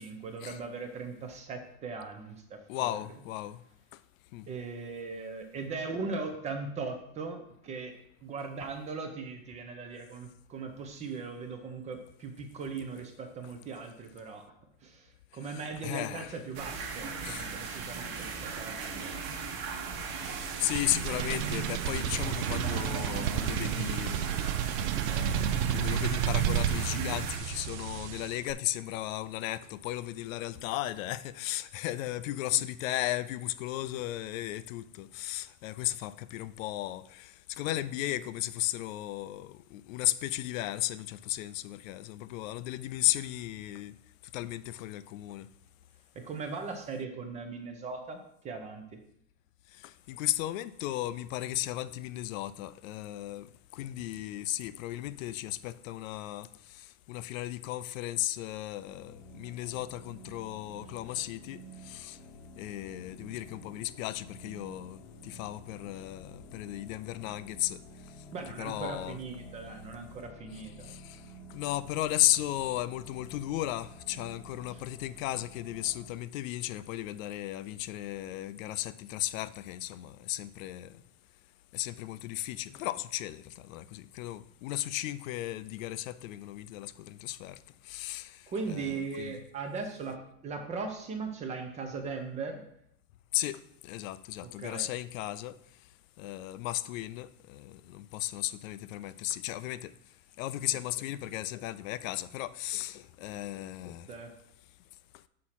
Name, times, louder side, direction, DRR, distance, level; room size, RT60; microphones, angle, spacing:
voice 1, 0.0-3.0 4.5-7.9 8.2-14.4 14.8-19.1 32.5-32.6 46.1-49.0 61.1-61.2 68.3-70.9 74.7-74.8 88.5-92.6 94.4-94.9 104.1-104.3, right 4 dB, 20° right, 0.4 m, -39 dB
voice 2, 2.7-3.6 4.3-4.4 15.8-16.3 17.2-17.5 20.3-24.4 25.1-25.3 25.7-37.3 37.6-43.9 44.3-45.5 50.1-53.5 53.7-56.5 57.1-61.6 61.9-62.2 62.6-67.8 68.6-69.2 70.9-71.0 71.5-80.9 81.7-87.6 87.9-88.3 88.7-89.3 93.3-95.5 96.2-99.9 100.4-104.1, left 15 dB, 70° left, 0.5 m, -35 dB
sound 1, 16.5-27.4, right 5 dB, 40° right, 1.1 m, -38 dB
sound 2, 20.2-28.5, right 10 dB, 80° right, 0.5 m, -31 dB
sound 3, 58.8-76.1, equal, 5° left, 0.9 m, -51 dB
6.5 x 4.2 x 5.7 m
supercardioid pair, 160°, 41 cm